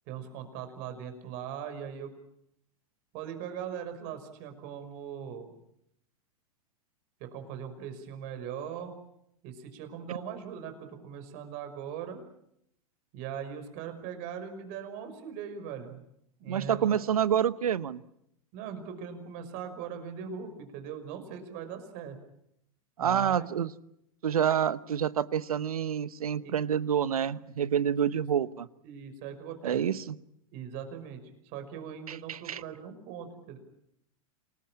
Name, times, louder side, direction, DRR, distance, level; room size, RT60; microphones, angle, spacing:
voice 1, 0.1-2.1 3.1-5.5 7.2-9.0 9.4-12.2 13.1-16.0 16.4-17.0 18.5-22.2 23.0-23.5 26.4-26.6 28.8-29.8 30.5-33.6, right 8 dB, 50° right, 8 dB, 5.6 m, -40 dB
voice 2, 16.5-18.0 23.0-23.7 24.2-28.7 29.6-30.2 32.1-32.6, right 9 dB, 85° right, 17 dB, 1.0 m, -28 dB
28.5 x 19.5 x 8.8 m, 0.76 s
hypercardioid pair, 105°, 18 cm